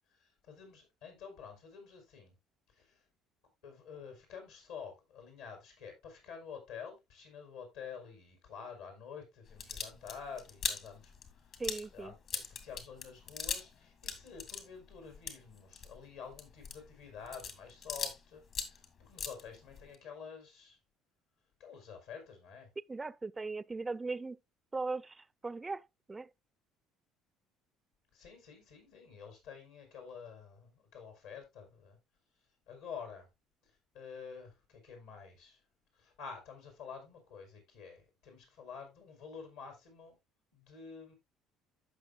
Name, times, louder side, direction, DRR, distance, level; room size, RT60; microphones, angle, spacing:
voice 1, 0.0-2.3 2.7-3.0 3.6-11.6 11.9-20.8 21.6-22.7 28.1-32.0 32.7-33.3 33.6-35.6 35.9-40.1 40.5-41.1, left 6 dB, 80° left, 4.6 m, -49 dB
sound 1, 9.5-13.7 14.0-18.2 18.5-19.9, left 6 dB, 55° left, 2.0 m, -40 dB
voice 2, 11.6-12.1 22.9-24.4 24.7-26.3, right 3 dB, 25° right, 0.4 m, -39 dB
15.0 x 5.9 x 2.4 m
hypercardioid pair, 60°, 0 cm